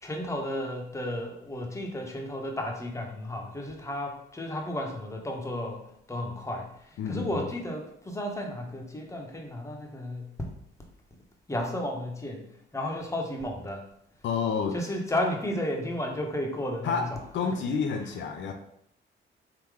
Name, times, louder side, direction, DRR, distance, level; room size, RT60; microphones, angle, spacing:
voice 1, 0.0-5.8 6.1-10.3 11.5-12.4 12.7-13.8 14.7-17.1 17.4-17.5, left 1 dB, 15° left, 1 dB, 1.0 m, -33 dB
voice 2, 7.0-7.5 14.2-14.8 16.8-18.5, left 5 dB, 65° left, 4 dB, 0.6 m, -29 dB
3.8 x 2.9 x 4.8 m, 0.71 s
cardioid pair, 90°, 20 cm